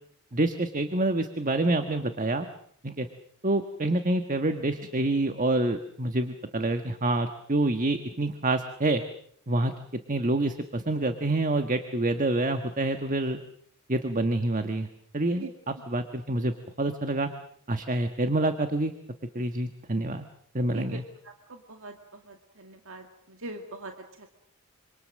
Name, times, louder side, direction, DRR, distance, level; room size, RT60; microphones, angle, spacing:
voice 1, 0.3-2.5 2.8-3.1 3.4-9.0 9.5-9.7 10.1-13.4 13.9-14.9 15.1-17.3 17.7-18.9 19.3-20.3 20.5-21.0, right 2 dB, 35° right, 8 dB, 1.3 m, -27 dB
voice 2, 20.7-21.9 22.3-24.3, right 2 dB, 65° right, 4 dB, 2.2 m, -42 dB
27.0 x 26.0 x 6.5 m, 0.63 s
head